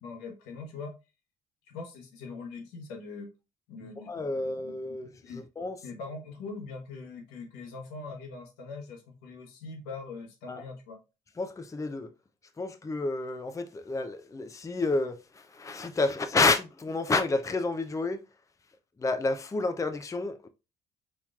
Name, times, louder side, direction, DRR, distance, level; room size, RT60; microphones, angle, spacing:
voice 1, 0.0-0.9 1.7-3.3 3.7-5.0 5.2-5.4 5.8-11.0, left 4 dB, 80° left, 1.1 m, -42 dB
voice 2, 3.8-5.8 10.5-10.6 11.4-12.1 12.6-18.2 19.0-20.5, left 3 dB, 20° left, 0.5 m, -30 dB
4.2 x 3.1 x 2.3 m
hypercardioid pair, 60°, 17 cm